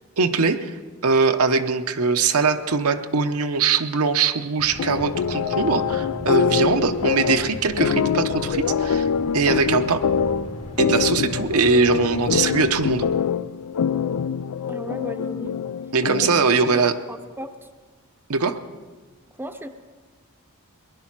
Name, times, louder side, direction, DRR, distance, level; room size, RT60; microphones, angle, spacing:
voice 1, 0.2-0.7 1.0-10.0 10.8-13.0 15.9-17.0 18.3-18.6, right 4 dB, 70° right, 8 dB, 0.8 m, -21 dB
sound 1, 4.6-13.1, equal, 65° left, 2.1 m, -38 dB
sound 2, 4.8-16.6, left 7 dB, 85° left, 0.4 m, -24 dB
voice 2, 14.7-15.6 16.2-16.3 16.7-17.5 19.4-19.7, right 1 dB, 10° right, 7 dB, 0.7 m, -35 dB
19.5 x 11.0 x 6.0 m, 1.4 s
head